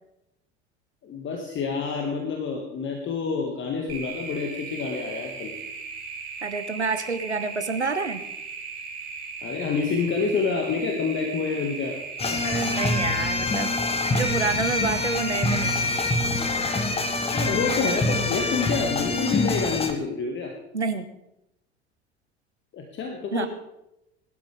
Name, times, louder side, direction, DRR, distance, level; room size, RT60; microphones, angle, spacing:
voice 1, 1.0-5.5 9.4-12.0 12.3-12.5 17.3-20.5 22.7-23.5, left 5 dB, 35° left, 2 dB, 1.9 m, -28 dB
sound 1, 3.9-16.2, right 5 dB, 45° right, 4.2 m, -37 dB
voice 2, 6.4-8.2 12.4-13.7 14.1-15.9 20.7-21.1 23.3-23.5, right 4 dB, 85° right, 11 dB, 1.0 m, -28 dB
sound 2, 12.2-19.9, left 2 dB, 20° left, 1.7 m, -25 dB
21.0 x 12.5 x 3.5 m, 0.86 s
figure-of-eight pair, 70°, 33 cm